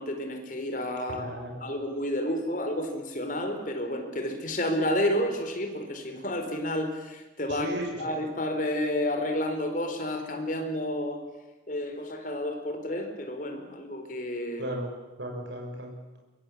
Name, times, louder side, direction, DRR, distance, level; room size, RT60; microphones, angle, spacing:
voice 1, 0.0-1.3 1.6-7.7 8.0-11.2 11.7-14.7, left 1 dB, 45° left, 5 dB, 4.3 m, -30 dB
voice 2, 1.1-1.6 7.5-7.9 14.6-14.9 15.2-15.9, right 1 dB, 65° right, 1 dB, 6.2 m, -35 dB
24.5 x 22.0 x 8.7 m, 1.1 s
head